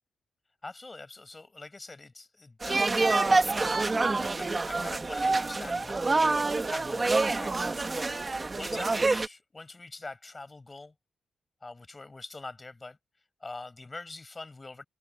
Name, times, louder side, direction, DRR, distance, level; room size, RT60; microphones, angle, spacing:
voice 1, 0.6-6.1 6.7-8.1 8.5-10.9 11.6-13.0 13.4-14.8, left 3 dB, 20° left, 8.0 m, -44 dB
sound 1, 2.6-9.3, right 3 dB, 25° right, 1.5 m, -27 dB
cardioid pair, 120°, 0 cm